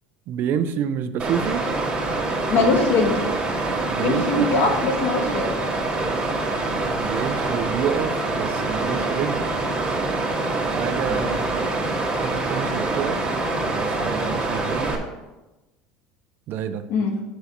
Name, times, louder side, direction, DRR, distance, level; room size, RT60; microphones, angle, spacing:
voice 1, 0.3-1.7 3.9-4.5 7.0-9.5 10.8-11.6 12.2-13.2 13.7-15.0 16.5-16.9, right 8 dB, 55° right, 10 dB, 0.6 m, -28 dB
Water, 1.2-14.9, right 2 dB, 20° right, 1.9 m, -25 dB
voice 2, 2.5-3.1 4.0-5.5 11.1-11.3 16.9-17.1, left 4 dB, 60° left, 2 dB, 1.7 m, -21 dB
5.7 x 5.6 x 6.6 m, 1.1 s
supercardioid pair, 95°, 4 cm